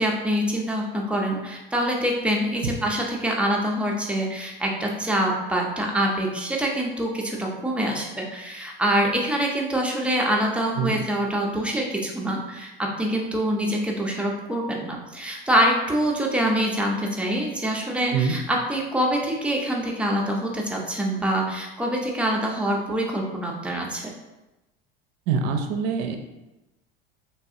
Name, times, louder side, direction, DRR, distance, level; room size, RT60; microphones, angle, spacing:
voice 1, 0.0-24.1, right 1 dB, 5° right, -1 dB, 0.5 m, -25 dB
voice 2, 25.3-26.2, right 6 dB, 65° right, 6 dB, 0.5 m, -24 dB
3.3 x 2.3 x 2.7 m, 1.0 s
hypercardioid pair, 90°, 29 cm